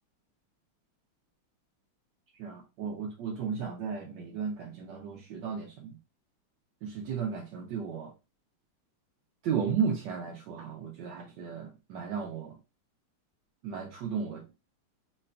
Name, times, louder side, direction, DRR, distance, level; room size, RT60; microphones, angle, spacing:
voice 1, 2.4-6.0 6.8-8.1 9.4-12.5 13.6-14.5, right 6 dB, 75° right, 1.0 m, -34 dB
3.8 x 3.3 x 2.4 m
omnidirectional pair, 2.4 m